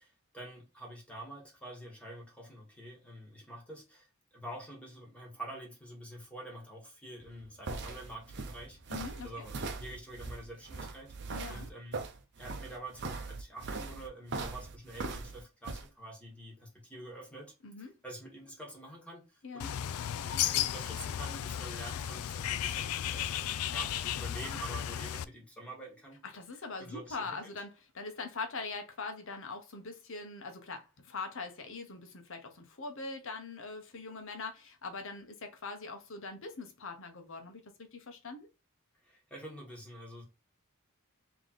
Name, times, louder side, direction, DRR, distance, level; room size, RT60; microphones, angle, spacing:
voice 1, 0.0-8.8 9.2-12.1 12.4-19.8 20.2-26.2 26.8-27.5 39.0-40.2, right 1 dB, 5° left, 1.5 m, -47 dB
sound 1, 7.2-15.9, right 3 dB, 55° right, 0.7 m, -40 dB
voice 2, 8.9-9.4 11.3-11.7 17.6-18.0 19.4-19.7 26.3-38.5, left 4 dB, 65° left, 1.0 m, -42 dB
Bird, 19.6-25.2, left 10 dB, 90° left, 0.3 m, -34 dB
3.4 x 3.0 x 3.9 m
head